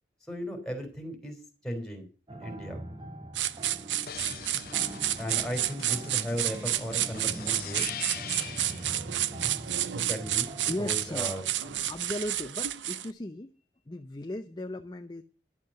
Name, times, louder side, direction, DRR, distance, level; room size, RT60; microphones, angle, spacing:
voice 1, 0.3-1.4 1.6-2.8 5.2-7.9 10.1-11.4, equal, 5° left, 3 dB, 3.3 m, -36 dB
sound 1, 2.3-11.8, right 1 dB, 25° right, 1.8 m, -43 dB
sound 2, 3.4-13.1, right 12 dB, 85° right, 0.6 m, -30 dB
sound 3, 4.1-8.9 11.7-12.7, left 8 dB, 55° left, 1.0 m, -43 dB
voice 2, 10.7-11.4 11.9-13.5 13.9-15.2, left 1 dB, 25° left, 6 dB, 0.6 m, -37 dB
11.0 x 7.4 x 7.5 m, 0.37 s
head